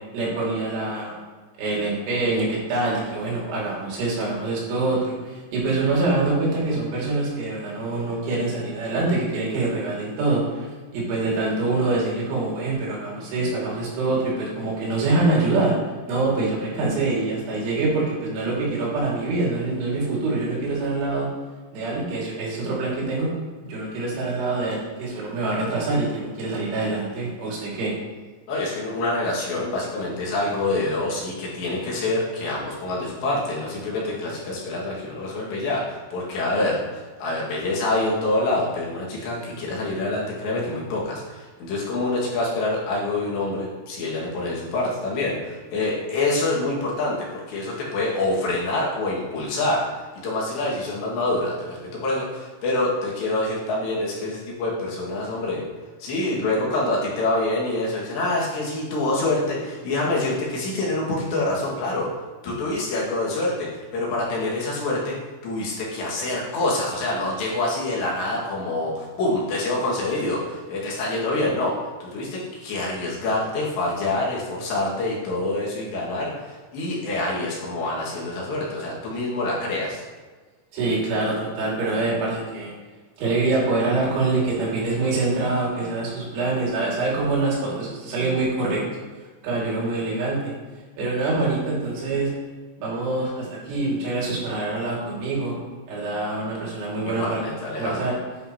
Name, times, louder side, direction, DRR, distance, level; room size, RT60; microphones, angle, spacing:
voice 1, 0.1-1.2 1.6-15.8 16.1-21.3 21.7-23.3 23.6-28.0 80.7-82.7 83.2-88.8 89.4-90.5 91.0-92.3 92.8-95.6 95.9-97.4 97.8-98.1, right 2 dB, 80° right, -5 dB, 4.8 m, -25 dB
voice 2, 28.5-55.6 56.0-62.1 62.4-65.2 65.4-80.0 97.0-98.0, left 2 dB, 70° left, -5 dB, 4.1 m, -26 dB
9.9 x 8.9 x 2.9 m, 1.4 s
omnidirectional pair, 5.3 m